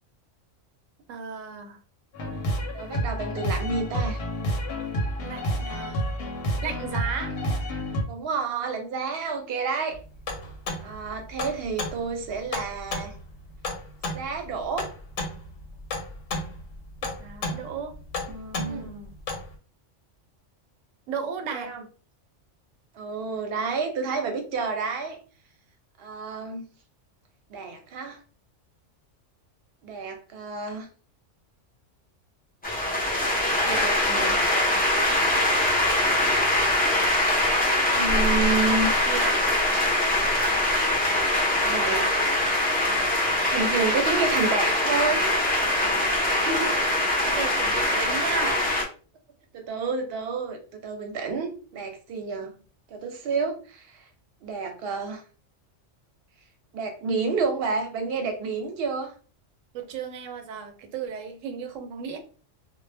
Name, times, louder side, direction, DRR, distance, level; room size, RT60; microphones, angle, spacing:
voice 1, 1.1-1.8 5.2-6.1 6.6-7.3 17.0-17.9 18.3-19.1 21.1-21.7 38.7-38.8 39.1-39.4 46.4-48.7 52.4-52.6 59.7-62.2, right 5 dB, 85° right, 6 dB, 1.0 m, -34 dB
sound 1, 2.1-8.0, equal, 60° left, 0.8 m, -29 dB
voice 2, 2.7-4.2 8.0-10.0 10.8-13.1 14.1-14.9 18.6-18.9 21.5-21.8 22.9-25.2 26.0-26.7 27.5-28.2 29.8-30.9 33.4-34.4 37.9-38.9 41.6-42.1 43.5-45.4 49.5-52.5 52.9-54.0 54.4-55.2 56.7-59.1, right 4 dB, 60° right, 4 dB, 0.8 m, -29 dB
sound 2, 9.9-19.5, left 2 dB, 90° left, 1.0 m, -34 dB
sound 3, 32.6-48.8, left 1 dB, 15° left, 0.3 m, -23 dB
2.1 x 2.0 x 3.2 m, 0.38 s
omnidirectional pair, 1.3 m